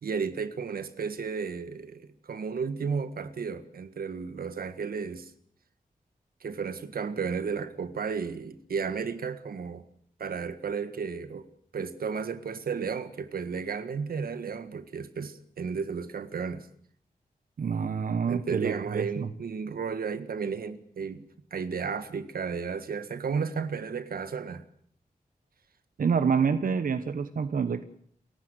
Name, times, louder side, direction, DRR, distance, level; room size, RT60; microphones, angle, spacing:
voice 1, 0.0-5.3 6.4-9.8 10.2-11.5 11.7-16.7 18.3-21.3 21.5-24.6, right 5 dB, 90° right, 1.7 m, -33 dB
voice 2, 17.6-19.3 26.0-27.8, right 6 dB, 70° right, 1.2 m, -27 dB
29.0 x 15.5 x 8.2 m
wide cardioid pair, 95°, 15 cm